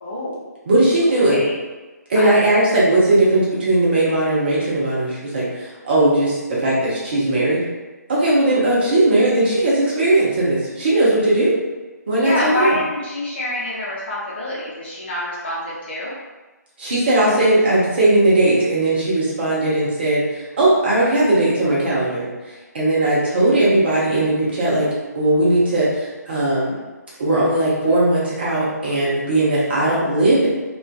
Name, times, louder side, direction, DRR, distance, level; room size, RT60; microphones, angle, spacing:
voice 1, 0.0-0.5 1.3-1.5 2.1-2.3 12.2-16.1, left 1 dB, 35° left, -8 dB, 0.8 m, -26 dB
voice 2, 0.7-1.4 2.1-7.6 8.1-11.5 12.1-12.7 16.8-24.9 25.1-26.7 27.2-30.5, right 1 dB, 35° right, -7 dB, 0.7 m, -18 dB
2.4 x 2.3 x 2.2 m, 1.2 s
figure-of-eight pair, 145°, 10 cm